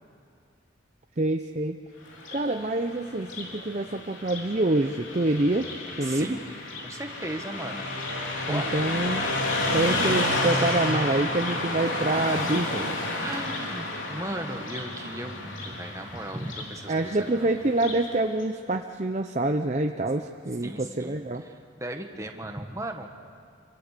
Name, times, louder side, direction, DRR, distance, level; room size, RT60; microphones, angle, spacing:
voice 1, 1.2-1.8 2.3-5.7 6.0-6.4 8.5-9.2 9.7-13.0 16.9-21.4, right 2 dB, 35° right, 5 dB, 0.7 m, -26 dB
Car passing by, 2.1-18.1, left 2 dB, 80° left, 3.6 m, -31 dB
voice 2, 6.0-6.6 6.8-7.9 8.4-8.7 13.2-17.5 20.6-23.1, right 1 dB, 15° right, 4 dB, 1.6 m, -37 dB
27.0 x 24.5 x 6.8 m, 2.4 s
head